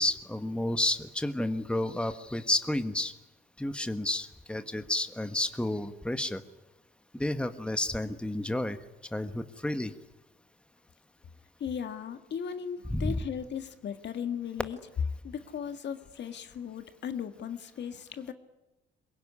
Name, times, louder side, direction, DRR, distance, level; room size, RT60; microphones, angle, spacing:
voice 1, 0.0-3.1 3.6-6.4 7.1-8.8 9.1-9.9 12.9-13.2, left 1 dB, 5° left, 10 dB, 1.4 m, -31 dB
voice 2, 11.6-14.8 15.2-18.3, left 8 dB, 60° left, 9 dB, 1.9 m, -37 dB
22.5 x 21.5 x 9.8 m, 1.1 s
cardioid pair, 90°, 20 cm